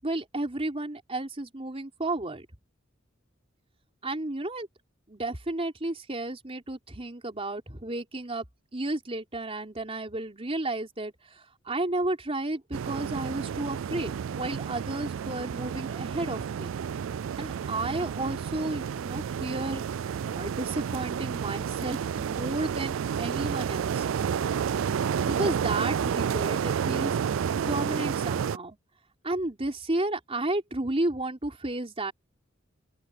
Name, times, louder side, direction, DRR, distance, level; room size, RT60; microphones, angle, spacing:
voice 1, 0.0-2.5 4.0-4.7 5.1-8.4 8.7-16.7 17.4-19.8 20.3-24.1 25.3-28.8 29.2-32.1, right 2 dB, 30° right, 3.7 m, -32 dB
sound 1, 12.7-28.6, right 7 dB, 80° right, 0.4 m, -30 dB
open air
head